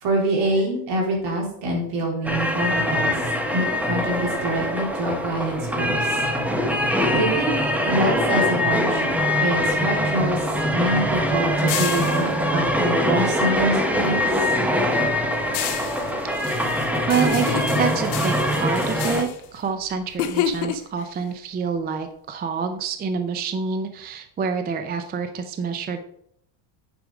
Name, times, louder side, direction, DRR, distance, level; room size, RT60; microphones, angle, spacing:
voice 1, 0.0-3.2 3.5-6.2 7.1-7.5 7.9-10.4 10.7-14.3, right 1 dB, 60° right, -1 dB, 3.8 m, -25 dB
sound 1, 2.3-19.2, equal, 5° right, 0.8 m, -23 dB
sound 2, 9.4-13.8 14.2-20.6, left 9 dB, 75° left, 1.8 m, -35 dB
voice 2, 16.2-16.8 17.1-26.0, right 5 dB, 20° right, 8 dB, 0.4 m, -27 dB
sound 3, 16.9-17.0 17.2-17.9 20.2-21.0, left 9 dB, 60° left, 0.8 m, -26 dB
9.4 x 5.1 x 4.8 m, 0.71 s
cardioid pair, 150°, 48 cm